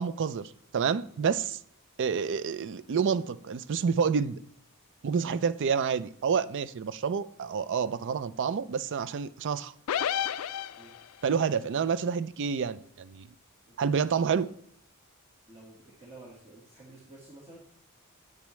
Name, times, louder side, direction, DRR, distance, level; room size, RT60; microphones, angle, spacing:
voice 1, 0.0-1.6 2.0-4.4 5.0-9.7 11.2-13.3 13.8-14.5, right 6 dB, 55° right, 0.4 m, -28 dB
sound 1, 9.9-11.3, left 9 dB, 70° left, 0.3 m, -31 dB
voice 2, 14.1-14.5 15.5-17.6, right 2 dB, 30° right, 1.7 m, -51 dB
9.1 x 6.8 x 3.2 m
head